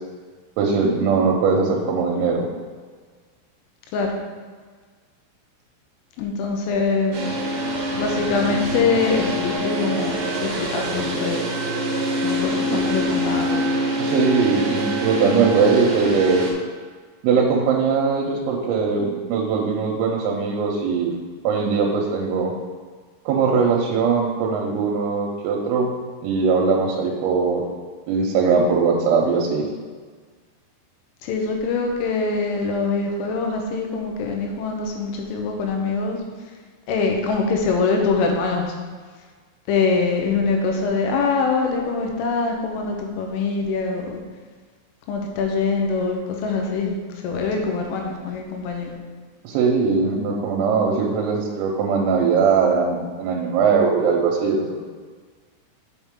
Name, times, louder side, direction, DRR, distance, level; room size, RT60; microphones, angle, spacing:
voice 1, 0.6-2.5 12.7-12.8 14.0-16.4 17.2-21.1 21.5-22.5 23.3-25.9 26.2-27.6 28.1-29.7 49.5-54.8, right 5 dB, 90° right, -1 dB, 3.5 m, -20 dB
voice 2, 6.2-7.4 8.0-11.4 12.2-13.6 31.2-36.2 36.9-38.7 39.7-44.2 45.1-47.0 47.2-49.0, left 4 dB, 80° left, 1 dB, 3.4 m, -24 dB
sound 1, 7.1-16.5, equal, 65° right, 2.4 m, -25 dB
7.6 x 5.5 x 3.7 m, 1.5 s
omnidirectional pair, 5.9 m